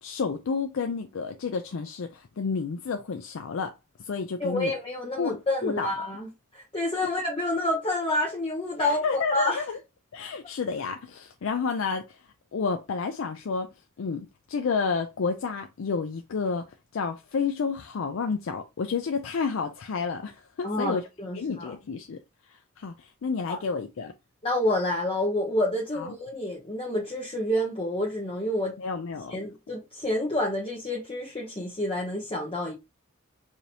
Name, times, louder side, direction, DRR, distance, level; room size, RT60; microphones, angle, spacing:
voice 1, 0.0-3.7 4.0-4.7 5.2-5.9 8.8-9.8 10.1-12.2 12.5-13.7 14.0-16.6 16.9-21.0 21.3-22.2 22.5-24.1 26.0-26.1 28.8-29.3, left 5 dB, 65° left, 0.4 m, -30 dB
voice 2, 4.4-9.0 9.3-9.6 20.6-21.7 23.5-23.6 24.4-28.8 29.3-32.7, left 1 dB, 25° left, 0.8 m, -28 dB
4.9 x 2.6 x 2.8 m
head